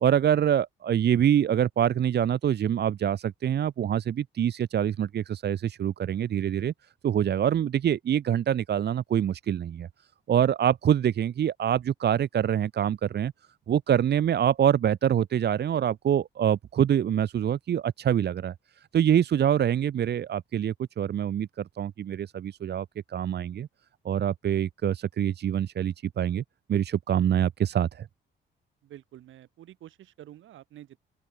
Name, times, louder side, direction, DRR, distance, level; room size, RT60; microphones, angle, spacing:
voice 1, 0.0-6.7 7.0-9.9 10.3-13.3 13.7-18.5 18.9-23.7 24.0-26.4 26.7-28.1, right 9 dB, 55° right, 1.3 m, -25 dB
voice 2, 28.8-31.0, right 13 dB, 80° right, 5.6 m, -48 dB
open air
cardioid pair, 90°, 20 cm